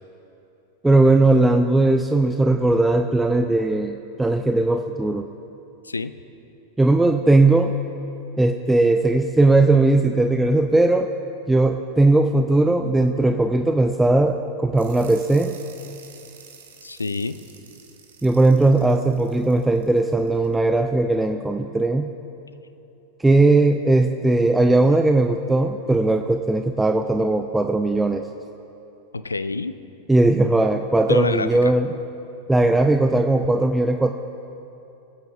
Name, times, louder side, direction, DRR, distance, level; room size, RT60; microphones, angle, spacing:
voice 1, 0.8-5.3 6.8-7.7 8.4-11.1 11.5-15.6 18.2-22.1 23.2-28.3 30.1-31.9 32.5-34.1, right 2 dB, 5° right, 7 dB, 0.4 m, -18 dB
sound 1, 14.8-20.5, right 6 dB, 60° right, 1.2 m, -48 dB
voice 2, 16.8-17.4 29.1-29.8 31.1-31.7, left 3 dB, 80° left, 13 dB, 0.4 m, -27 dB
22.0 x 9.1 x 3.6 m, 2.9 s
figure-of-eight pair, 90°, 0 cm